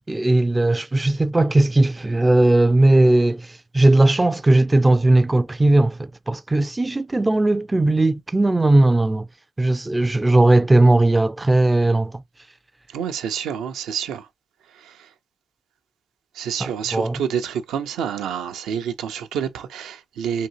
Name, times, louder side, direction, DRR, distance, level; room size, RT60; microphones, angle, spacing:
voice 1, 0.1-9.3 9.6-12.2 16.6-17.2, right 2 dB, 15° right, 0.3 m, -18 dB
voice 2, 12.9-14.3 14.7-15.1 16.3-20.5, right 8 dB, 85° right, 0.6 m, -28 dB
3.8 x 2.7 x 2.9 m
cardioid pair, 90°, 0 cm